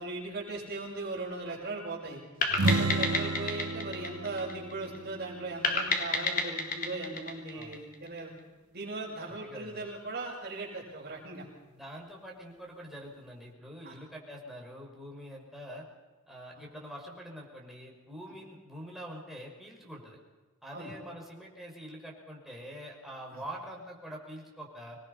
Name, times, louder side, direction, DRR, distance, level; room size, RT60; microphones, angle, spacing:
voice 1, 0.0-2.2 2.6-8.3 8.7-11.4 13.8-14.0 18.2-18.3 20.7-20.9 23.3-23.4, right 2 dB, 40° right, -7 dB, 6.5 m, -38 dB
sound 1, 2.4-5.0 5.6-8.2, left 4 dB, 40° left, 3.4 m, -31 dB
sound 2, 2.5-6.2, right 2 dB, 70° right, 1.1 m, -32 dB
voice 2, 9.3-9.9 11.7-15.8 16.3-20.2 20.6-25.0, equal, ahead, -2 dB, 5.8 m, -45 dB
26.5 x 21.0 x 5.7 m, 1.2 s
head